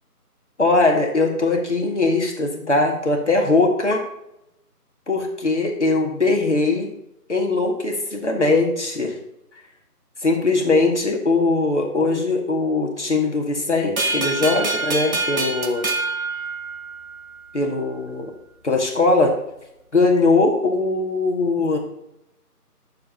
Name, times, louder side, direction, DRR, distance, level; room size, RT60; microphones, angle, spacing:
voice 1, 0.6-4.0 5.1-6.9 7.3-9.2 10.2-15.9 17.5-18.3 18.6-19.4 19.9-21.8, left 3 dB, 45° left, 0 dB, 2.0 m, -20 dB
sound 1, 14.0-17.2, right 3 dB, 60° right, 1.5 m, -25 dB
22.0 x 7.4 x 2.8 m, 0.83 s
figure-of-eight pair, 175°, 47 cm